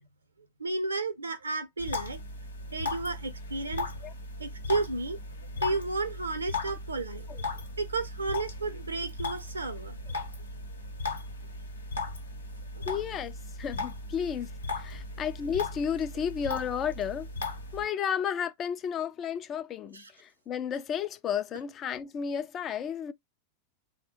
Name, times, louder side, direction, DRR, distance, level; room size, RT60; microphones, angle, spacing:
voice 1, 0.6-2.2 2.7-3.9 4.4-5.2 5.6-7.3 7.8-10.0 11.0-11.1 12.7-12.9 14.9-15.0 19.9-20.1, right 3 dB, 75° right, 0.6 m, -32 dB
sound 1, 1.8-17.9, left 3 dB, 75° left, 0.7 m, -37 dB
voice 2, 12.9-17.3 17.7-23.1, left 8 dB, 30° left, 0.3 m, -33 dB
3.2 x 2.1 x 3.0 m
figure-of-eight pair, 90°, 0 cm